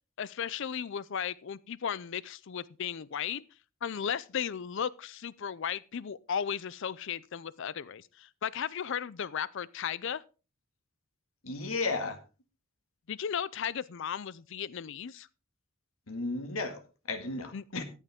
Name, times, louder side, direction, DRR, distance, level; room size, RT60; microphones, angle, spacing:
voice 1, 0.2-3.4 3.8-10.2 13.1-15.3 17.5-17.8, left 8 dB, 60° left, 0.5 m, -35 dB
voice 2, 11.4-12.2 16.1-17.8, left 3 dB, 85° left, 1.9 m, -34 dB
13.5 x 9.1 x 3.6 m
head